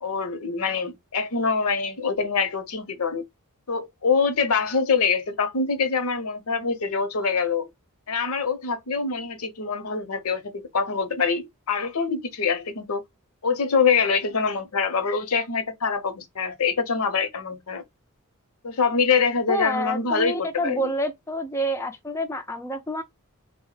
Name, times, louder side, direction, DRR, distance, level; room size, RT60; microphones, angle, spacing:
voice 1, 0.0-3.2 3.7-7.7 8.1-13.0 13.4-17.8 18.6-20.9, left 5 dB, 80° left, 0.7 m, -25 dB
voice 2, 19.5-23.0, equal, 10° left, 0.4 m, -28 dB
3.5 x 2.1 x 3.7 m
head